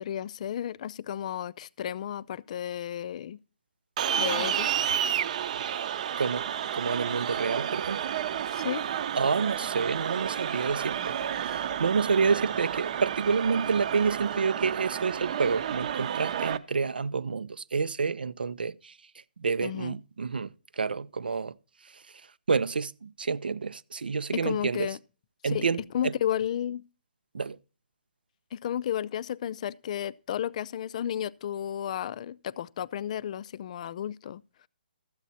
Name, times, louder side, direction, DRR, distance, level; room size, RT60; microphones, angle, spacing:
voice 1, 0.0-3.4 4.2-4.8 8.5-8.9 19.6-20.0 24.4-25.0 25.5-25.7 25.9-26.8 28.5-34.4, left 10 dB, 45° left, 0.4 m, -33 dB
sound 1, 4.0-16.6, right 9 dB, 50° right, 0.8 m, -31 dB
voice 2, 6.7-8.0 9.1-19.0 19.4-21.5 21.8-22.2 22.5-25.0 25.4-26.1 27.3-27.6, right 5 dB, 80° right, 0.6 m, -29 dB
13.0 x 8.2 x 4.1 m
hypercardioid pair, 145°, 5 cm